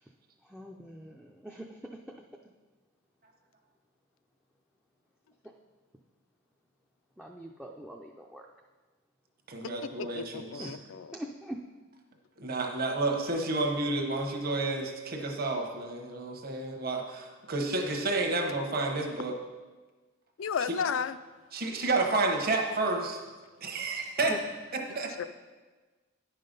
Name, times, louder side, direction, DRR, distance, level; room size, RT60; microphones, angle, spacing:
voice 1, 0.5-1.7 7.2-8.4 10.6-10.8 11.1-11.6 24.2-24.4, right 1 dB, 5° right, 0 dB, 0.4 m, -42 dB
voice 2, 9.5-10.8 12.4-19.3 21.5-23.2 23.6-24.4 24.7-25.3, right 2 dB, 45° right, 2 dB, 1.1 m, -30 dB
voice 3, 10.0-11.1 20.4-21.2 25.2-25.3, left 6 dB, 65° left, 13 dB, 0.4 m, -33 dB
9.7 x 5.7 x 5.3 m, 1.3 s
head